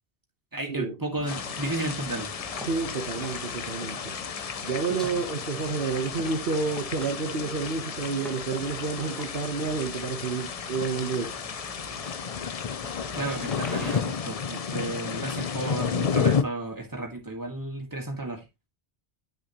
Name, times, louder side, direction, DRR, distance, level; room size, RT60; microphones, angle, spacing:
voice 1, 0.5-2.3 13.1-18.4, right 2 dB, 20° right, 2.2 m, -33 dB
sound 1, 1.1-14.0, equal, ahead, 1.8 m, -44 dB
sound 2, 1.3-16.4, left 6 dB, 40° left, 0.6 m, -32 dB
voice 2, 2.7-4.2 4.6-11.3, right 4 dB, 60° right, 1.3 m, -30 dB
10.5 x 6.7 x 3.0 m
omnidirectional pair, 1.1 m